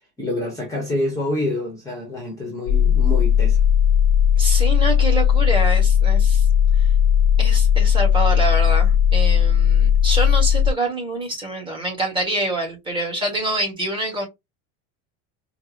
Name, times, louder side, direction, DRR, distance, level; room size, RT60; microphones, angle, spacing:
voice 1, 0.2-3.6, left 1 dB, 10° left, 0.8 m, -27 dB
sound 1, 2.7-10.7, left 8 dB, 70° left, 0.7 m, -16 dB
voice 2, 4.4-6.4 7.4-14.3, right 2 dB, 15° right, 1.1 m, -26 dB
4.6 x 2.1 x 2.5 m
cardioid pair, 170°, 37 cm